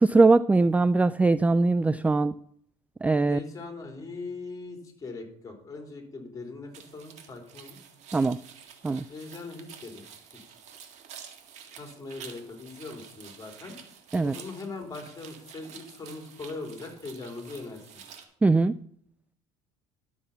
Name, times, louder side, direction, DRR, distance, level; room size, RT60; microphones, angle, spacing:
voice 1, 0.0-2.3 3.0-3.4 8.1-8.4 8.8-9.0 14.1-14.3 18.4-18.7, right 3 dB, 10° right, 17 dB, 0.3 m, -21 dB
voice 2, 3.3-7.8 9.1-10.0 10.5-10.6 11.7-13.8 14.2-17.8, left 3 dB, 25° left, 3 dB, 3.8 m, -40 dB
sound 1, 6.7-18.2, right 8 dB, 65° right, 2.0 m, -49 dB
12.0 x 7.3 x 5.6 m, 0.66 s
supercardioid pair, 80°, 13 cm